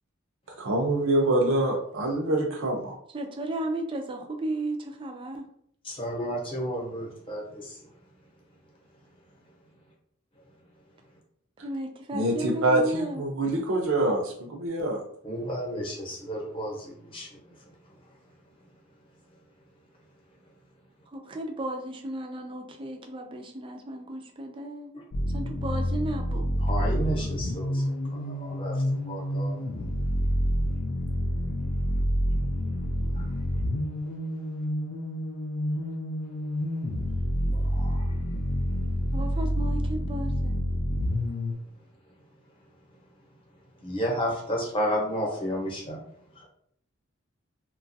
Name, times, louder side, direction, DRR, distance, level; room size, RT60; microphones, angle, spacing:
voice 1, 0.6-2.9 12.1-15.0, right 1 dB, 75° right, 0 dB, 0.6 m, -25 dB
voice 2, 3.1-5.5 11.6-13.2 21.1-24.9 25.3-26.5 39.1-40.5, right 1 dB, 25° right, 3 dB, 0.4 m, -34 dB
voice 3, 5.8-7.8 15.2-17.4 26.6-29.9 32.9-33.3 37.5-38.1 43.8-46.0 46.3-46.4, equal, 25° left, -3 dB, 0.8 m, -32 dB
sound 1, 25.1-41.5, equal, 75° left, 0.4 m, -28 dB
2.9 x 2.3 x 2.6 m, 0.65 s
head